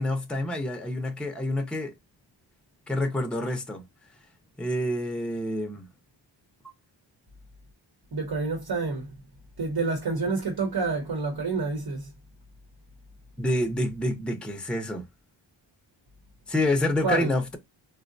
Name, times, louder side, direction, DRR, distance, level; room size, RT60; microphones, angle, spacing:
voice 1, 0.0-1.9 2.9-3.8 4.6-5.9 13.4-15.0 16.5-17.6, left 1 dB, ahead, 0.6 m, -27 dB
voice 2, 8.1-9.1 9.6-12.1 17.0-17.3, right 3 dB, 55° right, 1.0 m, -28 dB
3.7 x 2.1 x 2.5 m
wide cardioid pair, 95°, 45 cm